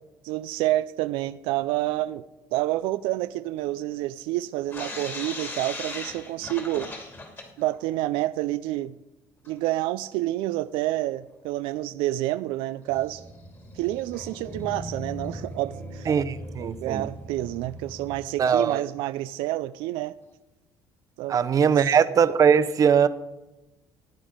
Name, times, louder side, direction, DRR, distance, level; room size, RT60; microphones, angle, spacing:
voice 1, 0.2-2.2 2.5-6.9 7.6-9.0 9.5-13.2 13.7-16.2 16.6-20.2 21.2-21.4 21.7-22.0, right 16 dB, 85° right, 0.4 m, -28 dB
sound 1, 4.7-7.8 8.1-8.2 8.4-8.5 9.5-9.6 10.6-10.7 11.2-11.3 11.7-11.8 12.9-18.5, left 1 dB, 30° left, 2.8 m, -39 dB
voice 2, 16.1-17.1 18.4-18.8 21.3-23.1, right 7 dB, 45° right, 0.8 m, -20 dB
15.5 x 9.2 x 5.1 m
cardioid pair, 95°, 9 cm